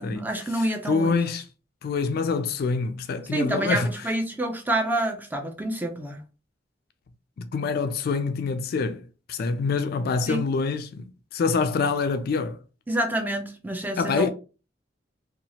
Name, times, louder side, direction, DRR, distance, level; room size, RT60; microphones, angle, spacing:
voice 1, 0.0-1.2 3.3-6.2 10.3-10.4 12.9-14.3, right 1 dB, 10° right, 0.5 m, -28 dB
voice 2, 0.9-1.4 1.8-3.9 7.4-12.6 14.0-14.3, left 4 dB, 55° left, 0.3 m, -26 dB
2.8 x 2.3 x 2.8 m
head